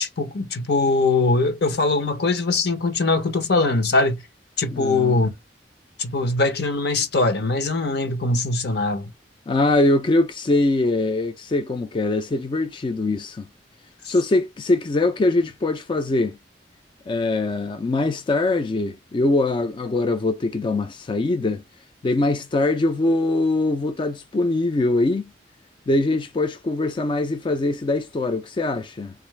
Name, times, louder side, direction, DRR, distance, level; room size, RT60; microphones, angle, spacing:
voice 1, 0.0-4.2 4.6-5.3 6.0-9.1, left 3 dB, 65° left, 0.8 m, -21 dB
voice 2, 4.7-5.2 9.5-13.5 14.0-16.4 17.1-21.6 22.0-25.3 25.9-29.1, left 2 dB, 30° left, 0.3 m, -22 dB
3.9 x 2.5 x 3.1 m
head